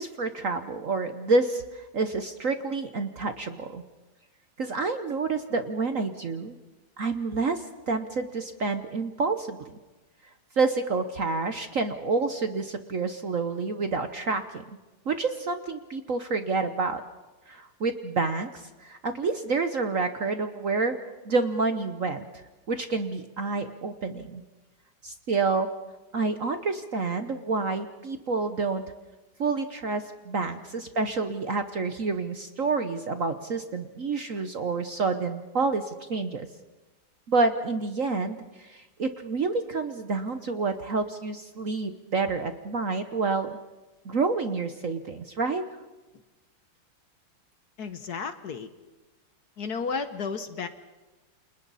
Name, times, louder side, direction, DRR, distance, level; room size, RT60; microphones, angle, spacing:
voice 1, 0.0-3.8 4.6-6.6 7.0-9.7 10.5-14.6 15.1-17.0 17.5-21.0 21.3-22.2 22.7-24.4 25.0-25.7 26.1-28.8 29.4-36.5 37.3-43.6 44.0-45.6, right 4 dB, 50° right, 8 dB, 1.1 m, -28 dB
voice 2, 47.8-48.7 49.6-50.7, left 5 dB, 55° left, 10 dB, 1.4 m, -32 dB
29.5 x 27.5 x 4.1 m, 1.2 s
omnidirectional pair, 2.3 m